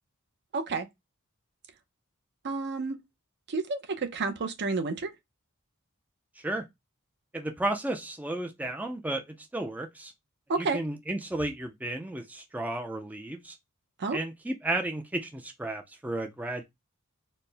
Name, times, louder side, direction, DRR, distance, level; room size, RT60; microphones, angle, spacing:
voice 1, 0.5-0.9 2.4-3.0 3.5-5.1 10.5-10.8 14.0-14.2, right 3 dB, 55° right, 0.6 m, -30 dB
voice 2, 7.3-10.1 10.6-13.6 14.1-16.6, right 1 dB, 5° right, 0.4 m, -33 dB
4.2 x 2.1 x 3.2 m
head